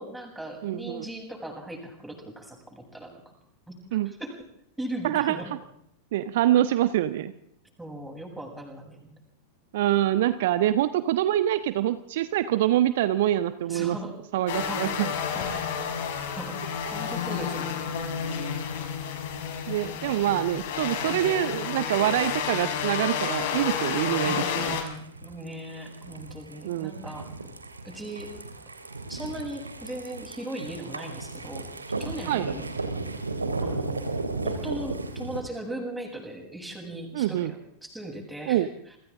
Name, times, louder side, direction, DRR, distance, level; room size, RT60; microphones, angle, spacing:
voice 1, 0.0-3.3 3.7-3.8 4.1-4.3 4.8-5.5 7.8-9.2 13.7-14.1 14.6-15.7 16.4-17.9 18.2-18.7 24.2-27.3 27.8-28.3 29.1-31.7 32.0-32.6 33.6-39.0, right 1 dB, 5° right, 2 dB, 8.0 m, -38 dB
voice 2, 0.6-1.1 3.9-4.1 5.0-5.4 6.1-7.3 9.7-14.0 14.3-15.1 19.7-24.8 26.6-26.9 32.3-32.5 37.1-37.5 38.5-38.7, right 13 dB, 55° right, 12 dB, 1.2 m, -25 dB
sound 1, 14.5-24.8, left 7 dB, 55° left, 6.3 m, -30 dB
sound 2, 24.6-35.4, right 3 dB, 80° right, 3.2 m, -35 dB
29.5 x 25.0 x 3.8 m, 0.71 s
figure-of-eight pair, 90°, 0 cm